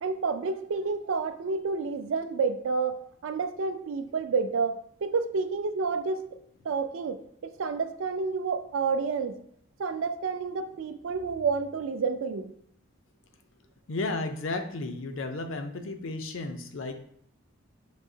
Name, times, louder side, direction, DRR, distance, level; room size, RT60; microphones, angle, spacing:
voice 1, 0.0-3.0 3.2-6.3 6.6-9.4 9.8-12.5, right 4 dB, 75° right, 10 dB, 0.4 m, -29 dB
voice 2, 13.9-17.0, left 2 dB, 75° left, 7 dB, 0.5 m, -33 dB
6.1 x 2.7 x 2.7 m, 0.70 s
head